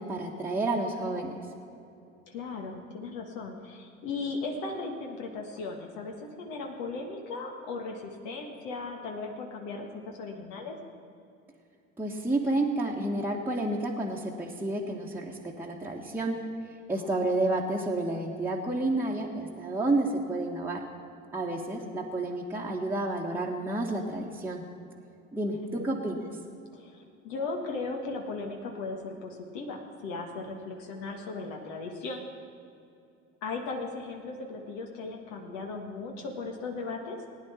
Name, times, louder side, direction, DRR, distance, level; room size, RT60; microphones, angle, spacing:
voice 1, 0.0-1.4 12.0-16.4 16.9-20.8 21.3-24.7 25.3-26.2, right 2 dB, 5° right, -3 dB, 1.4 m, -30 dB
voice 2, 2.3-10.7 16.9-17.1 21.5-22.0 25.5-26.0 26.7-32.2 33.4-37.2, left 3 dB, 60° left, 1 dB, 1.6 m, -37 dB
19.0 x 9.8 x 4.4 m, 2.6 s
hypercardioid pair, 65°, 37 cm